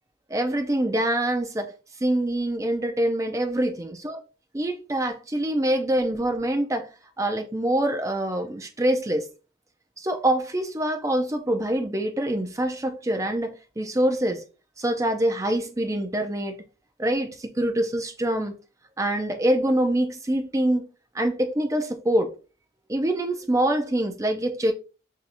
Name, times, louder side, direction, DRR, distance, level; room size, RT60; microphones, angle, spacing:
voice 1, 0.3-1.7 2.0-4.2 4.5-6.9 7.2-9.2 10.0-14.4 14.8-16.6 17.0-18.6 19.0-20.9 21.1-22.3 22.9-24.7, right 1 dB, 15° right, 0.4 m, -25 dB
6.1 x 2.7 x 2.5 m
head